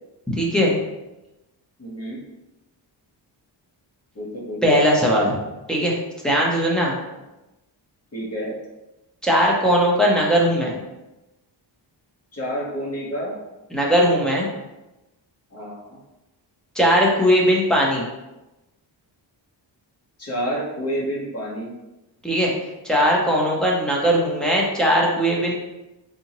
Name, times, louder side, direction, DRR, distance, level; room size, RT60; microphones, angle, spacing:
voice 1, 0.3-0.8 4.6-5.4 5.7-6.0 6.2-6.9 9.2-10.8 13.7-14.5 16.8-18.1 22.2-22.5 22.8-25.5, equal, ahead, -4 dB, 0.4 m, -19 dB
voice 2, 1.8-2.2 4.1-4.8 8.1-8.5 12.3-13.3 15.5-16.0 20.2-21.7, equal, 35° left, -4 dB, 1.0 m, -29 dB
3.6 x 2.8 x 2.9 m, 1.0 s
wide cardioid pair, 180°, 45 cm